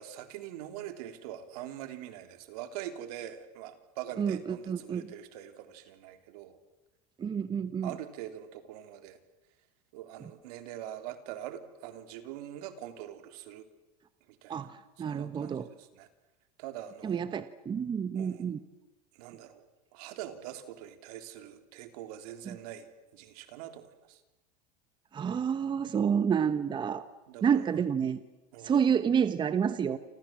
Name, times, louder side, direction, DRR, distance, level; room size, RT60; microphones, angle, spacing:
voice 1, 0.0-6.6 7.8-9.2 9.9-13.6 14.4-14.7 15.0-16.1 16.6-17.2 18.1-18.4 19.1-19.6 19.9-24.2 27.3-27.7 28.5-28.7, right 11 dB, 65° right, 9 dB, 3.4 m, -43 dB
voice 2, 4.2-5.1 7.2-7.9 14.5-15.7 17.0-18.6 25.1-27.0 27.4-28.2 28.6-30.0, right 7 dB, 20° right, 12 dB, 1.1 m, -29 dB
29.0 x 26.5 x 7.6 m, 1.1 s
supercardioid pair, 125°, 21 cm